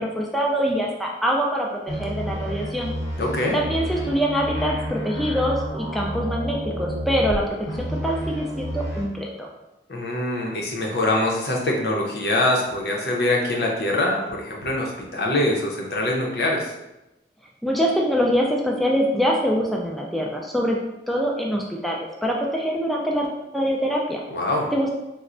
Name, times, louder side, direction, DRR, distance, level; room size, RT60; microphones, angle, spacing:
voice 1, 0.0-2.9 3.5-9.5 17.6-20.8 21.1-23.3 23.5-24.2 24.7-24.9, equal, ahead, -2 dB, 0.3 m, -24 dB
sound 1, 1.9-7.4 7.7-9.0, equal, 20° left, 0.7 m, -30 dB
voice 2, 3.2-3.6 9.9-16.7 24.3-24.7, left 1 dB, 65° left, -1 dB, 0.7 m, -24 dB
4.2 x 2.1 x 2.5 m, 0.96 s
head